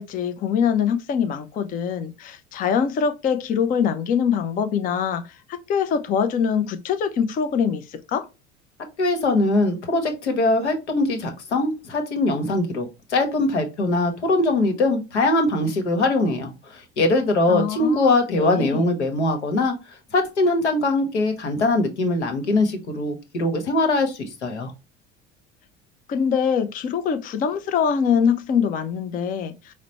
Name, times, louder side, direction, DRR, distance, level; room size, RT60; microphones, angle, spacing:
voice 1, 0.0-8.3 17.5-18.9 26.1-29.7, left 7 dB, 25° left, 0.4 m, -24 dB
voice 2, 9.0-19.7 20.1-24.7, left 2 dB, 75° left, 1.0 m, -22 dB
4.9 x 2.1 x 4.1 m
figure-of-eight pair, 65°, 34 cm